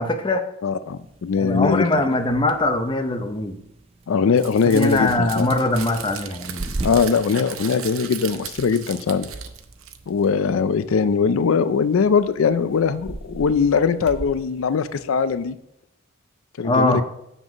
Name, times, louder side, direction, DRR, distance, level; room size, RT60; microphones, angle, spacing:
voice 1, 0.0-0.5 1.4-3.6 4.7-6.7 16.6-17.0, left 2 dB, 25° left, 6 dB, 0.6 m, -22 dB
voice 2, 0.6-1.9 4.1-5.5 6.8-9.3 10.1-15.6 16.6-17.0, left 5 dB, 85° left, 13 dB, 0.4 m, -21 dB
sound 1, 0.8-15.6, right 2 dB, 30° right, 0.5 m, -40 dB
Crumpling crinkling, 4.4-10.3, right 9 dB, 90° right, 0.7 m, -37 dB
7.0 x 6.1 x 5.1 m, 0.80 s
head